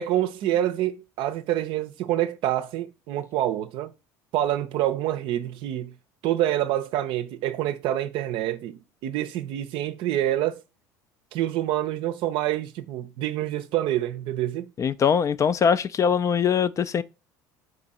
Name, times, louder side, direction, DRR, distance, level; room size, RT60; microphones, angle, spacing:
voice 1, 0.0-3.9 4.3-5.9 6.2-10.6 11.3-14.7, right 13 dB, 65° right, 0.5 m, -27 dB
voice 2, 14.8-17.0, left 7 dB, 35° left, 0.3 m, -22 dB
4.8 x 2.6 x 4.1 m
supercardioid pair, 85°, 9 cm